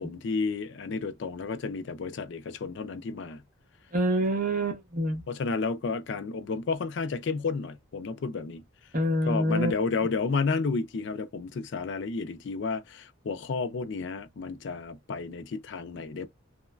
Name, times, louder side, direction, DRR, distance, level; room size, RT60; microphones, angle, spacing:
voice 1, 0.0-3.4 5.3-8.6 9.3-16.3, left 4 dB, 60° left, 0.4 m, -31 dB
voice 2, 3.9-5.2 8.9-9.7, equal, 40° right, 0.8 m, -26 dB
3.0 x 2.1 x 2.3 m
head